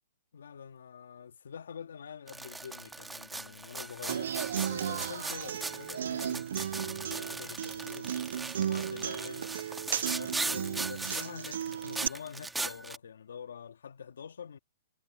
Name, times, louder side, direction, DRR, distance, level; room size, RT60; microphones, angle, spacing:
voice 1, 0.3-4.4 4.7-6.5 6.7-8.1 8.6-9.5 10.1-14.6, left 7 dB, 80° left, 1.8 m, -46 dB
sound 1, 2.3-13.0, right 3 dB, 5° right, 1.8 m, -39 dB
Human voice / Acoustic guitar, 4.1-12.1, right 9 dB, 70° right, 0.3 m, -35 dB
hypercardioid pair, 140°, 0 cm